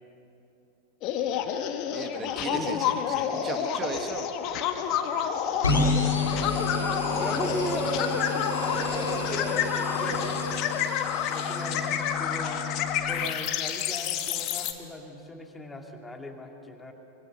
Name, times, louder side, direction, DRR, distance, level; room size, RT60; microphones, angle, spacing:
sound 1, 1.0-14.7, left 9 dB, 40° left, 1.7 m, -29 dB
voice 1, 1.9-4.3, right 5 dB, 25° right, 6 dB, 2.0 m, -37 dB
voice 2, 2.4-2.8 7.2-10.2 11.3-12.7 13.1-16.9, left 1 dB, 10° left, 2 dB, 2.6 m, -37 dB
Train, 3.8-12.9 13.3-13.4, right 2 dB, 60° right, 7.1 m, -38 dB
sound 2, 5.6-13.2, left 4 dB, 75° left, 3.7 m, -31 dB
24.5 x 24.5 x 6.8 m, 2.8 s
figure-of-eight pair, 90°, 0 cm